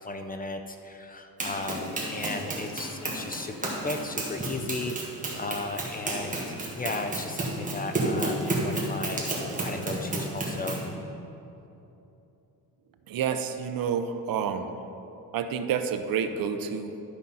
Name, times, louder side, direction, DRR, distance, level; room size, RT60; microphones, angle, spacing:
voice 1, 0.0-3.5 3.8-6.4 6.8-9.2 9.6-10.8, left 2 dB, 25° left, 6 dB, 0.4 m, -35 dB
Run, 1.4-10.9, right 2 dB, 20° right, 1.6 m, -31 dB
voice 2, 13.1-14.8 15.3-17.0, right 7 dB, 65° right, 8 dB, 0.7 m, -29 dB
12.0 x 5.3 x 5.6 m, 2.9 s
cardioid pair, 155°, 38 cm